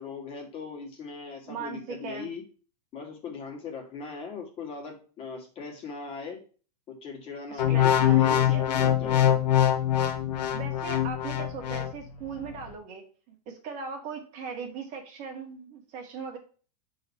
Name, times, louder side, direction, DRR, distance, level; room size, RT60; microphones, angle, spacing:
voice 1, 0.0-2.4 2.9-6.4 6.9-9.4, left 5 dB, 25° left, 1 dB, 2.2 m, -39 dB
voice 2, 1.5-2.3 7.5-8.2 8.5-8.7 10.5-16.4, right 5 dB, 40° right, 3 dB, 2.0 m, -39 dB
sound 1, 7.6-11.9 12.5-12.7, left 10 dB, 75° left, 1.3 m, -23 dB
6.6 x 4.1 x 5.5 m, 0.38 s
supercardioid pair, 145°, 21 cm